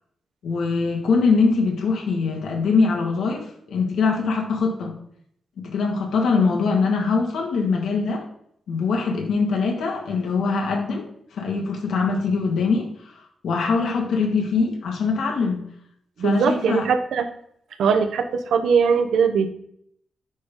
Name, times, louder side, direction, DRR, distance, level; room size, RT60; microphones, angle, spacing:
voice 1, 0.4-5.0 5.6-8.2 8.7-11.1 11.3-15.6 16.2-16.8, left 4 dB, 85° left, 1 dB, 1.8 m, -22 dB
voice 2, 16.2-17.3 17.8-19.5, right 6 dB, 85° right, 8 dB, 0.8 m, -20 dB
9.3 x 5.4 x 3.7 m, 0.68 s
wide cardioid pair, 175°, 0 cm